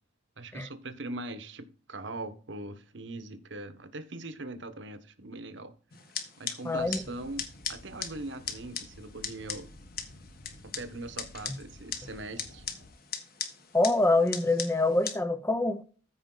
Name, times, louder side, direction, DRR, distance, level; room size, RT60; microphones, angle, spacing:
voice 1, 0.4-5.7 6.4-7.4 7.7-9.7 10.6-12.6, right 2 dB, 60° right, 1.2 m, -41 dB
sound 1, 5.9-15.1, left 7 dB, 45° left, 1.5 m, -40 dB
voice 2, 6.6-7.0 13.7-15.8, left 2 dB, 10° left, 0.6 m, -25 dB
sound 2, 6.7-12.9, left 1 dB, 60° left, 1.3 m, -52 dB
14.5 x 5.1 x 3.9 m
head